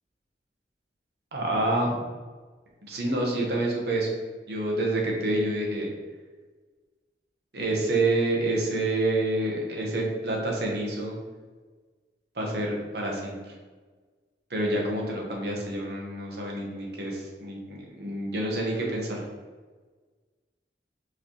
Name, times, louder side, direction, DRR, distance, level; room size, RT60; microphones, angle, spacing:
voice 1, 1.3-2.0 2.9-4.1 4.5-5.9 7.5-11.2 12.3-13.5 14.5-19.2, right 2 dB, 65° right, -2 dB, 1.0 m, -28 dB
4.8 x 3.3 x 3.0 m, 1.4 s
head